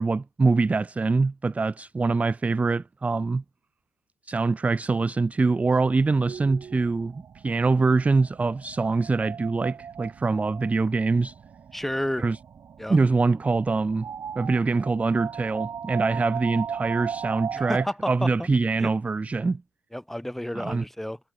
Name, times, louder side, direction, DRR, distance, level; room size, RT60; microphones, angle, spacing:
voice 1, 0.0-3.4 4.3-11.3 12.2-12.4 12.9-14.1 14.4-19.6 20.5-20.8, right 3 dB, 15° right, 0.8 m, -24 dB
sound 1, 5.9-17.8, right 7 dB, 35° right, 2.2 m, -38 dB
voice 2, 11.7-12.3 12.8-13.0 17.5-18.5 18.8-18.9 19.9-21.2, left 1 dB, 5° left, 3.5 m, -31 dB
cardioid pair, 145°, 9 cm